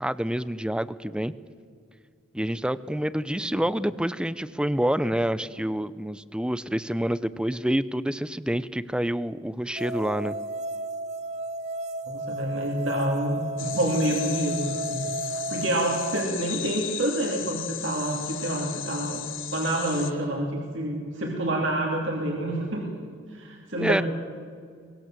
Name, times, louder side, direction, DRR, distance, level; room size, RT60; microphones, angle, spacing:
voice 1, 0.0-1.3 2.3-10.4 23.7-24.0, equal, 5° right, 16 dB, 0.6 m, -27 dB
sound 1, 9.8-16.2, right 2 dB, 35° right, 0.9 m, -33 dB
voice 2, 12.1-19.2 19.5-22.9 23.3-24.0, right 1 dB, 70° right, 0 dB, 3.0 m, -28 dB
sound 2, 13.6-20.1, left 12 dB, 85° left, 1.2 m, -36 dB
23.5 x 21.0 x 7.6 m, 2.1 s
head